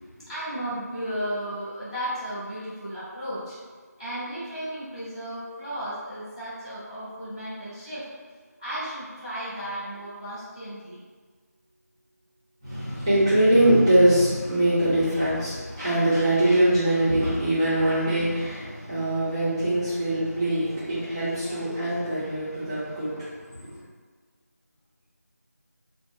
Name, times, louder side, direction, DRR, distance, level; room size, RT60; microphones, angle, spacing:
voice 1, 0.3-3.6 4.0-8.1 8.6-11.0, equal, 20° left, -14 dB, 1.0 m, -34 dB
voice 2, 12.6-23.3 23.6-23.8, right 1 dB, 15° right, -16 dB, 0.5 m, -23 dB
2.8 x 2.0 x 3.3 m, 1.5 s
figure-of-eight pair, 170°, 9 cm